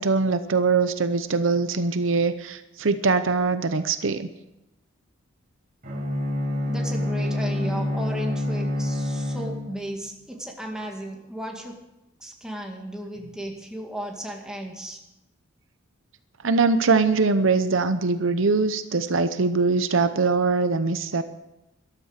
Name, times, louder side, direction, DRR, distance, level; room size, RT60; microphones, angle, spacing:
voice 1, 0.0-4.3 16.4-21.2, right 4 dB, 65° right, 11 dB, 0.8 m, -22 dB
Bowed string instrument, 5.8-10.0, left 1 dB, 40° right, 5.0 m, -27 dB
voice 2, 6.7-11.8 12.2-15.0, right 1 dB, 5° right, 0 dB, 2.1 m, -35 dB
13.5 x 12.5 x 6.6 m, 0.92 s
head